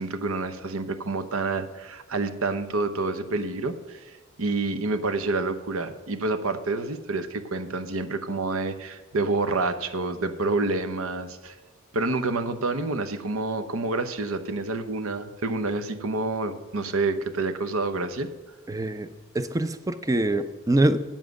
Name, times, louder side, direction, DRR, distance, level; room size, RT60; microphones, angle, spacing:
voice 1, 0.0-4.0 4.4-11.6 11.9-18.3, right 3 dB, 70° right, 10 dB, 0.8 m, -28 dB
voice 2, 18.7-19.1 19.3-21.0, right 1 dB, 15° right, 11 dB, 0.4 m, -24 dB
9.0 x 7.3 x 6.3 m, 1.2 s
head